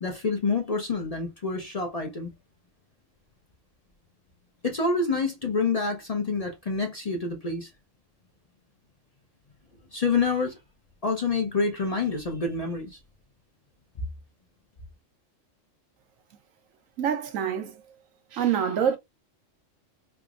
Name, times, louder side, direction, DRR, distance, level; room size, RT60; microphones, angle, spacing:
voice 1, 0.0-2.3 4.6-7.7 9.9-10.5 11.0-13.0, left 4 dB, 40° left, 0.6 m, -27 dB
voice 2, 17.0-17.8 18.3-19.0, right 8 dB, 90° right, 1.2 m, -25 dB
3.4 x 2.9 x 2.4 m
omnidirectional pair, 1.3 m